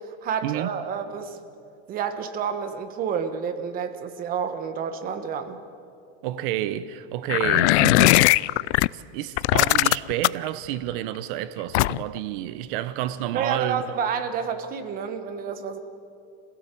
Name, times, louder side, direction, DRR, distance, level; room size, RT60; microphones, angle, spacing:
voice 1, 0.1-1.4 1.9-5.6 13.3-15.8, right 7 dB, 25° right, 1.3 m, -29 dB
voice 2, 6.2-8.4 8.9-14.0, right 13 dB, 50° right, 0.9 m, -30 dB
sound 1, 7.3-8.9 9.4-10.5 11.7-12.2, left 19 dB, 90° left, 0.5 m, -19 dB
26.0 x 16.5 x 8.4 m
supercardioid pair, 165°, 33 cm